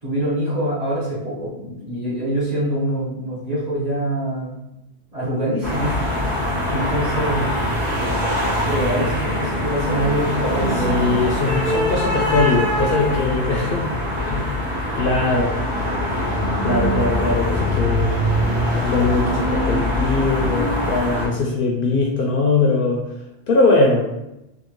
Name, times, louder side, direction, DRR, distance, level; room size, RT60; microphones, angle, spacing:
voice 1, 0.0-4.6 5.1-6.4 6.7-7.6 8.7-11.0 12.8-13.4, right 1 dB, 35° right, -7 dB, 1.0 m, -25 dB
sound 1, 5.6-21.3, left 1 dB, 60° right, 1.4 m, -22 dB
voice 2, 10.8-13.9 14.3-14.6 14.9-15.5 16.6-18.2 18.7-23.0 23.5-24.1, left 3 dB, 60° left, -1 dB, 0.7 m, -21 dB
3.5 x 2.3 x 3.0 m, 0.90 s
omnidirectional pair, 1.2 m